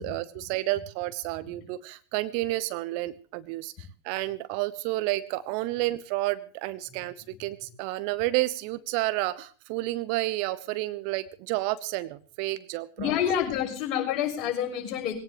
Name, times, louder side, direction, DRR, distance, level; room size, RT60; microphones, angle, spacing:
voice 1, 0.0-13.1, right 18 dB, 45° right, 15 dB, 1.0 m, -30 dB
voice 2, 13.0-15.2, left 9 dB, 35° left, 3 dB, 6.2 m, -29 dB
21.5 x 18.0 x 3.1 m, 0.42 s
figure-of-eight pair, 90°, 0 cm